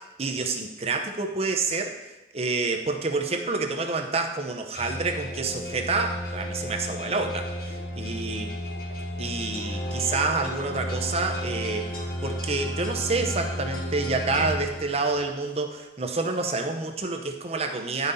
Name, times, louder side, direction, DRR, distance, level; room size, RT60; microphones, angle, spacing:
voice 1, 0.0-2.0 2.3-8.5 9.2-11.9 12.2-18.1, right 3 dB, 35° right, 5 dB, 0.8 m, -28 dB
sound 1, 4.7-15.4, equal, 55° left, 1.5 m, -33 dB
10.5 x 5.6 x 4.0 m, 1.0 s
head